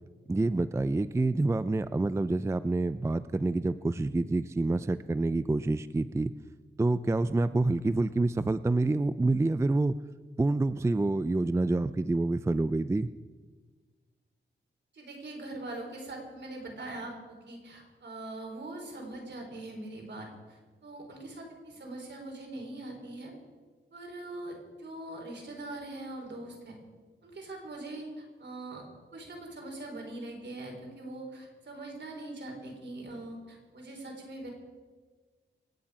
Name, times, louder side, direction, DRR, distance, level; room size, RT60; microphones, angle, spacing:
voice 1, 0.3-6.3 6.8-10.0 10.4-13.1, right 2 dB, 15° right, 14 dB, 0.4 m, -27 dB
voice 2, 14.9-23.3 23.9-26.8 27.2-28.8 29.1-34.5, right 2 dB, 65° right, 0 dB, 3.9 m, -42 dB
26.5 x 9.0 x 4.9 m, 1.5 s
wide cardioid pair, 100°, 20 cm